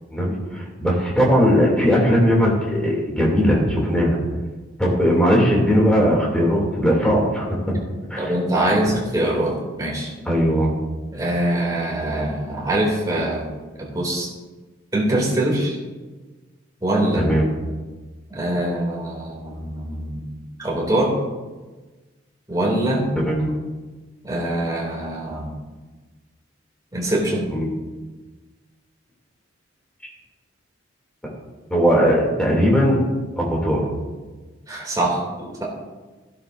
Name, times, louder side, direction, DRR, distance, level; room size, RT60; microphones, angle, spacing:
voice 1, 0.1-4.2 4.8-7.5 8.1-8.3 10.2-10.7 17.1-17.5 23.2-23.5 27.5-27.7 31.7-33.0 33.4-33.8, equal, 5° left, -3 dB, 2.6 m, -18 dB
voice 2, 8.2-10.1 11.1-13.4 13.8-14.3 14.9-15.8 16.8-17.3 18.3-21.2 22.5-23.1 24.2-25.5 26.9-27.5 34.7-35.6, right 1 dB, 20° right, -3 dB, 2.7 m, -23 dB
14.0 x 11.5 x 2.6 m, 1.3 s
head